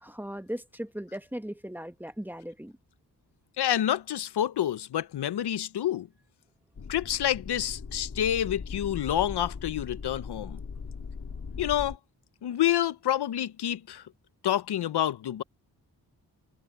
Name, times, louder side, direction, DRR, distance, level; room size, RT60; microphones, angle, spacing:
voice 1, 0.0-2.7, equal, 5° right, 1.0 m, -38 dB
voice 2, 3.6-6.1 6.9-10.6 11.6-12.0 12.4-14.0 14.4-15.4, left 11 dB, 80° left, 0.7 m, -28 dB
sound 1, 6.7-12.0, left 5 dB, 45° left, 2.4 m, -39 dB
wide cardioid pair, 135°, 40 cm